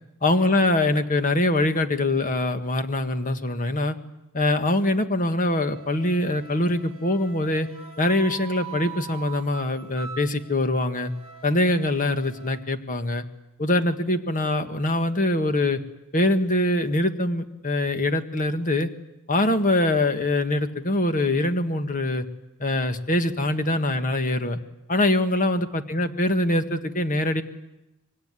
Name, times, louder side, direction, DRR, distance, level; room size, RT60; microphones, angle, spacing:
voice 1, 0.2-4.0 4.3-7.7 8.0-11.1 11.4-13.2 13.6-15.8 16.1-18.9 19.3-22.2 22.6-24.6 24.9-27.4, left 1 dB, 40° left, 8 dB, 1.7 m, -23 dB
Wind instrument woodwind instrument, 5.5-12.6, right 8 dB, 25° right, 2.6 m, -43 dB
25.5 x 23.0 x 9.8 m, 0.90 s
head